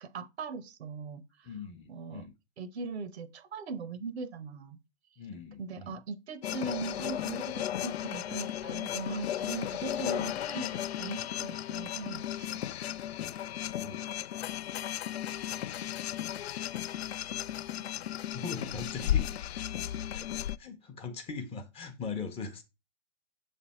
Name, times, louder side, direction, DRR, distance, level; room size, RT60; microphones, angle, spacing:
voice 1, 0.0-1.5 1.9-2.3 2.6-4.8 5.6-12.4, right 4 dB, 65° right, 0.9 m, -40 dB
voice 2, 1.4-2.3 5.2-6.0 13.8-14.0 18.3-19.3 20.1-22.6, left 5 dB, 15° left, 0.7 m, -40 dB
sound 1, 6.4-20.6, left 11 dB, 65° left, 0.4 m, -35 dB
7.0 x 3.4 x 4.2 m
figure-of-eight pair, 120°, 35 cm